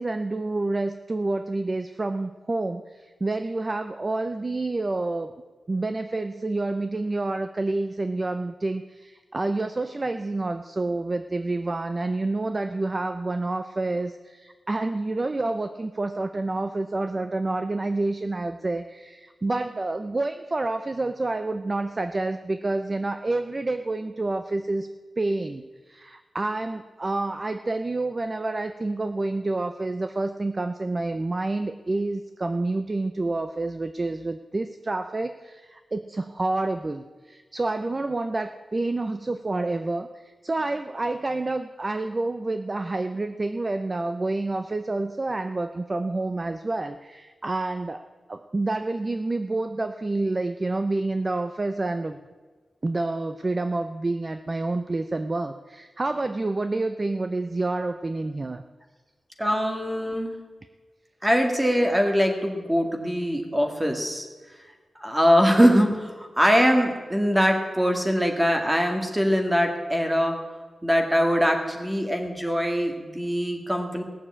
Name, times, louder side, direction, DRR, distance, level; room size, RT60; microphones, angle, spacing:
voice 1, 0.0-5.3 5.7-24.9 25.2-48.0 48.3-52.2 52.8-58.6, right 2 dB, 25° right, 9 dB, 0.5 m, -28 dB
voice 2, 59.4-60.3 61.2-64.3 65.0-70.4 70.8-74.0, equal, 10° right, 3 dB, 1.9 m, -22 dB
17.5 x 7.1 x 8.5 m, 1.3 s
wide cardioid pair, 145°, 0 cm